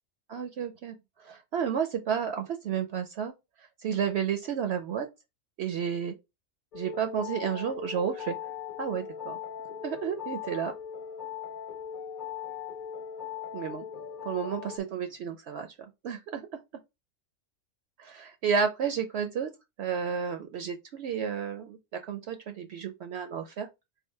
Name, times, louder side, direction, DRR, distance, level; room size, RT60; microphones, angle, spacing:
voice 1, 0.3-0.9 1.2-3.3 3.8-5.1 5.6-6.1 6.7-8.3 8.8-9.4 9.8-10.7 13.5-13.8 14.2-15.7 16.0-16.5 18.0-19.5 19.8-23.7, right 7 dB, 65° right, 0.7 m, -31 dB
sound 1, 6.7-14.8, left 8 dB, 55° left, 0.6 m, -39 dB
3.6 x 2.4 x 4.5 m
omnidirectional pair, 1.4 m